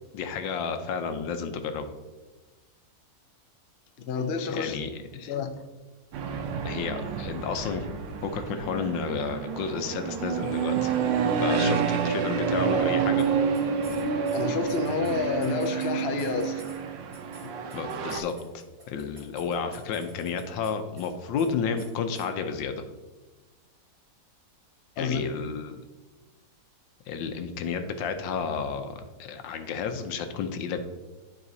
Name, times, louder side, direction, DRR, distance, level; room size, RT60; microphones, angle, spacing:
voice 1, 0.1-1.9 4.5-5.3 6.6-7.9 8.2-11.0 11.4-13.3 17.7-22.8 25.0-25.8 27.1-30.8, left 6 dB, 85° left, 7 dB, 1.4 m, -31 dB
voice 2, 4.0-4.8 5.2-5.6 14.3-16.6 25.0-25.2, left 5 dB, 65° left, 6 dB, 0.6 m, -29 dB
sound 1, 6.1-18.2, right 6 dB, 85° right, 1.4 m, -28 dB
sound 2, 13.2-13.3 13.5-16.8 17.1-20.7 21.0-21.1 21.4-21.5 21.8-21.9 22.1-22.3, right 1 dB, 50° right, 2.4 m, -49 dB
12.0 x 4.0 x 2.7 m, 1.2 s
omnidirectional pair, 1.9 m